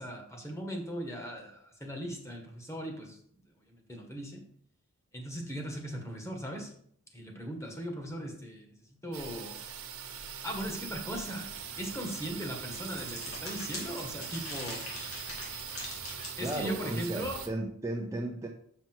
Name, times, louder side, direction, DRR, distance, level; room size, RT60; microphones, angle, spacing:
voice 1, 0.0-3.2 3.6-4.4 5.1-6.7 7.1-9.6 10.4-14.8 16.4-17.4, equal, 15° left, 1 dB, 1.6 m, -39 dB
sound 1, 9.1-17.5, right 8 dB, 85° right, 1.1 m, -42 dB
sound 2, 11.6-17.5, left 2 dB, 70° left, 2.6 m, -44 dB
voice 2, 16.4-18.5, right 1 dB, 15° right, 0 dB, 0.7 m, -35 dB
6.9 x 6.0 x 4.6 m, 0.62 s
head